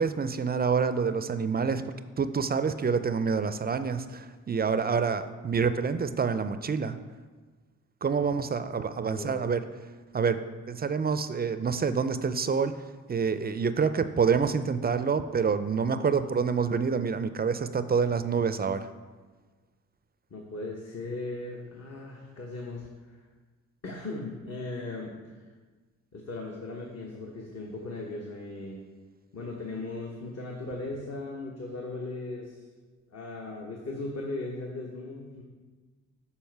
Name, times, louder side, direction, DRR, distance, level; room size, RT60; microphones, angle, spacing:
voice 1, 0.0-1.8 2.2-7.0 8.0-9.6 10.1-10.4 10.7-12.7 13.1-18.9, right 5 dB, 30° right, 12 dB, 0.4 m, -27 dB
voice 2, 9.1-9.4 20.3-23.2 23.8-25.2 26.1-28.8 29.3-32.7 33.1-35.4, left 2 dB, 50° left, -1 dB, 1.0 m, -38 dB
7.3 x 4.2 x 4.6 m, 1.4 s
cardioid pair, 55°, 33 cm